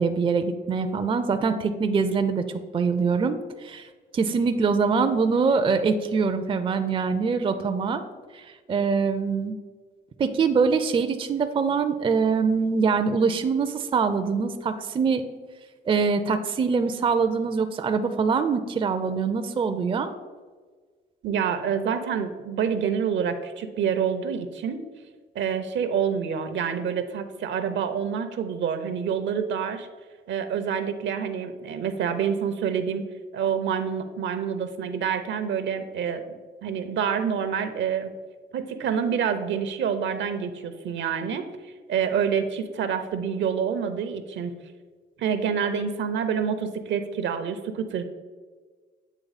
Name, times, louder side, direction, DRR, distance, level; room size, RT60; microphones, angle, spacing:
voice 1, 0.0-2.5 2.7-3.9 4.1-8.0 8.3-9.5 10.2-15.2 15.9-20.1, right 5 dB, 25° right, 8 dB, 0.4 m, -24 dB
voice 2, 21.2-24.8 25.3-29.9 30.3-33.0 33.3-38.1 38.5-44.6 45.2-48.1, right 7 dB, 65° right, 9 dB, 0.6 m, -27 dB
8.3 x 3.2 x 4.0 m, 1.4 s
cardioid pair, 90°, 20 cm